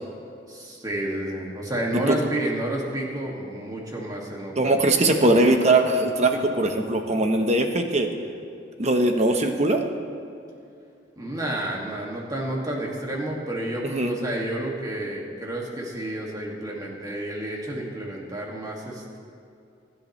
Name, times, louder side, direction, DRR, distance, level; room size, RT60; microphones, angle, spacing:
voice 1, 0.5-4.7 11.2-19.2, right 1 dB, 20° right, -2 dB, 2.2 m, -30 dB
voice 2, 4.6-8.1 8.8-9.8 13.8-14.1, right 2 dB, 35° right, 5 dB, 1.1 m, -21 dB
24.0 x 10.5 x 3.3 m, 2.6 s
head